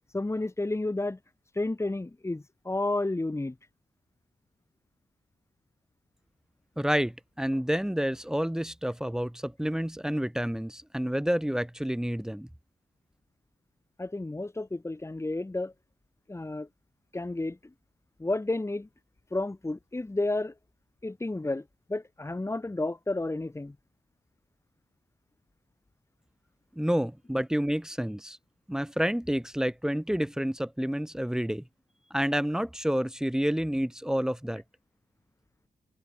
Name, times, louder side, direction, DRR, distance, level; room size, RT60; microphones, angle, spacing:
voice 1, 0.1-1.2 1.5-3.5 14.0-15.7 16.3-16.7 17.1-17.6 18.2-18.9 19.3-20.5 21.0-21.6 21.9-23.7, left 2 dB, 15° left, 4.5 m, -31 dB
voice 2, 6.8-12.5 26.8-28.4 28.7-31.6 32.1-34.6, equal, 5° right, 2.5 m, -29 dB
wide cardioid pair, 160°, 16 cm